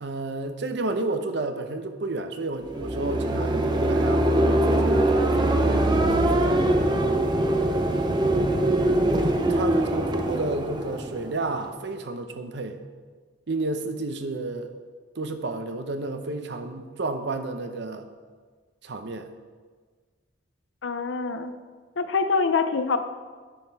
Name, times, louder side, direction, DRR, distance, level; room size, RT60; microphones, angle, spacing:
voice 1, 0.0-6.9 9.5-12.8 13.5-14.7 15.2-18.1 18.8-19.3, right 2 dB, 65° right, 7 dB, 0.7 m, -31 dB
sound 1, 2.6-11.7, right 1 dB, 25° right, 0.6 m, -23 dB
voice 2, 20.8-21.5 22.0-23.0, left 4 dB, 75° left, 9 dB, 0.6 m, -25 dB
10.0 x 5.4 x 4.6 m, 1.5 s
head